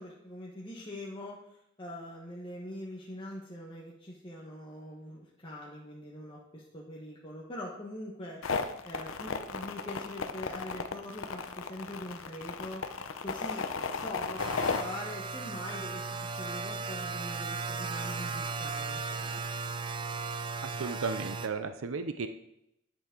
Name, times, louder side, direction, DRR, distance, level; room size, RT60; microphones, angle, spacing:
voice 1, 0.0-8.4 8.8-12.8 13.2-19.4, left 1 dB, 25° left, -4 dB, 1.2 m, -43 dB
sound 1, 8.4-14.8, left 5 dB, 70° left, 0.7 m, -34 dB
sound 2, 14.4-21.5, right 4 dB, 25° right, 0.5 m, -36 dB
voice 2, 20.6-22.3, right 4 dB, 70° right, 9 dB, 0.5 m, -34 dB
11.0 x 6.9 x 3.8 m, 0.82 s
head